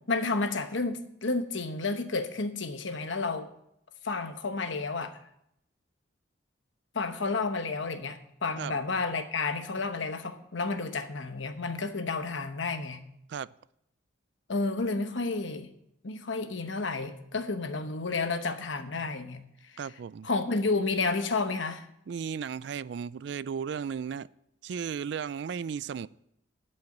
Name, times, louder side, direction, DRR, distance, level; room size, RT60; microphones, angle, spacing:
voice 1, 0.1-3.5 4.0-5.1 6.9-13.0 14.5-15.7 16.0-19.4 20.2-21.8, left 3 dB, 70° left, 1.0 m, -31 dB
voice 2, 19.8-20.3 22.1-24.3 24.6-26.1, right 7 dB, 60° right, 0.3 m, -35 dB
11.5 x 5.6 x 8.4 m
head